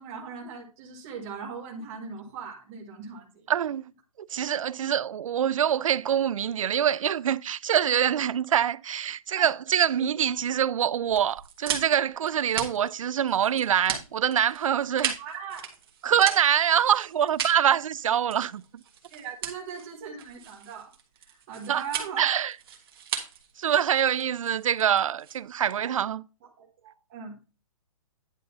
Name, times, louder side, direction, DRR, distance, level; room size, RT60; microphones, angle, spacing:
voice 1, 0.0-3.5 4.8-4.9 9.3-9.5 9.9-10.3 15.2-15.6 19.1-20.9 21.2-22.2 25.8-26.0 26.6-27.3, right 6 dB, 25° right, 1.5 m, -40 dB
voice 2, 3.5-3.8 4.2-15.2 16.0-18.6 21.7-21.8 22.2-22.5 23.6-26.2, right 9 dB, 65° right, 0.4 m, -25 dB
sound 1, 11.1-25.8, right 7 dB, 40° right, 1.6 m, -37 dB
10.0 x 3.8 x 5.5 m
hypercardioid pair, 170°, 18 cm